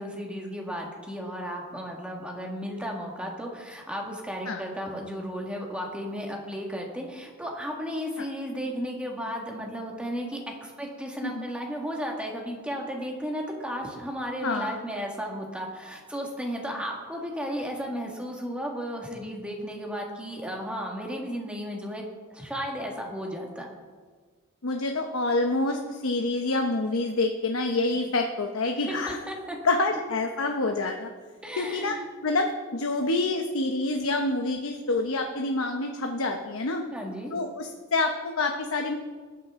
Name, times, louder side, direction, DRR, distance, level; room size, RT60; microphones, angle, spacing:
voice 1, 0.0-22.0 22.3-23.7 28.9-29.6 31.4-32.0 36.9-37.3, equal, 5° right, 0 dB, 1.8 m, -34 dB
voice 2, 14.4-14.8 24.6-29.2 29.6-31.1 31.6-32.0 32.2-36.8 37.3-38.9, left 2 dB, 75° left, 4 dB, 0.9 m, -27 dB
20.0 x 9.2 x 3.7 m, 1.5 s
head